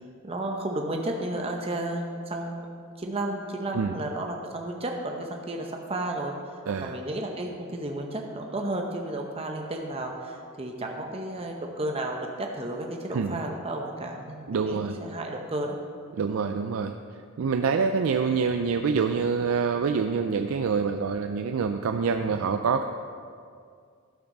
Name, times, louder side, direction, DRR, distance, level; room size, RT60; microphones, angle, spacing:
voice 1, 0.2-2.7 3.0-6.4 6.8-15.8, right 1 dB, 25° right, 1 dB, 0.8 m, -32 dB
voice 2, 6.7-7.0 13.1-13.4 14.5-15.0 16.2-16.9 17.4-22.9, right 5 dB, 70° right, 6 dB, 0.4 m, -26 dB
12.5 x 5.9 x 5.3 m, 2.2 s
head